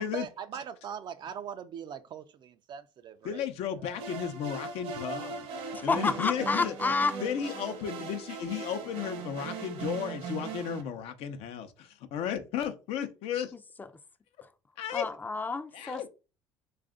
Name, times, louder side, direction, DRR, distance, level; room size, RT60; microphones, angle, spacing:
voice 1, 0.0-4.2, right 8 dB, 45° right, 0.4 m, -41 dB
voice 2, 3.2-6.9 7.2-13.5 14.8-15.1 15.7-16.1, left 9 dB, 70° left, 0.7 m, -34 dB
sound 1, 4.0-10.8, right 5 dB, 70° right, 0.9 m, -39 dB
voice 3, 5.9-7.1 14.9-16.1, left 4 dB, 15° left, 0.4 m, -29 dB
3.3 x 2.4 x 3.7 m
supercardioid pair, 90°, 10 cm